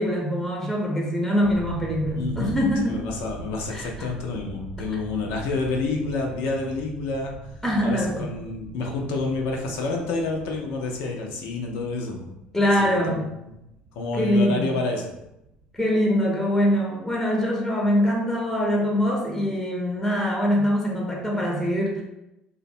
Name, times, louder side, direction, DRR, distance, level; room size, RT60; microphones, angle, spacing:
voice 1, 0.0-3.0 3.7-4.1 7.6-8.3 12.5-13.3 14.1-14.7 15.7-22.0, equal, 10° left, -2 dB, 0.7 m, -23 dB
sound 1, 1.4-15.9, right 2 dB, 55° right, 0.4 m, -42 dB
voice 2, 2.2-2.6 2.9-7.3 7.8-12.3 12.8-13.2 14.0-15.1, left 3 dB, 65° left, 1 dB, 0.4 m, -28 dB
2.5 x 2.1 x 2.6 m, 0.89 s
figure-of-eight pair, 60°, 4 cm